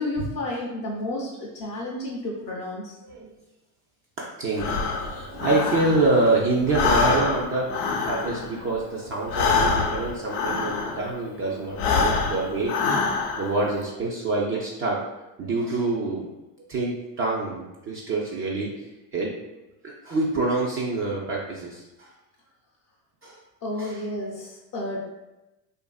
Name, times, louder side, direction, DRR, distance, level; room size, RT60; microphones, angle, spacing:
voice 1, 0.0-3.0 23.6-25.1, left 1 dB, 35° left, -2 dB, 0.5 m, -31 dB
voice 2, 4.2-12.7 13.4-15.0 15.4-16.3 16.7-19.3 20.0-22.1 23.2-23.4 23.8-23.9, right 2 dB, 30° right, -3 dB, 0.4 m, -26 dB
Breathing, 4.5-6.3 6.6-11.2 11.7-13.6, left 4 dB, 80° left, 0.6 m, -25 dB
2.5 x 2.5 x 2.3 m, 0.99 s
supercardioid pair, 95°, 46 cm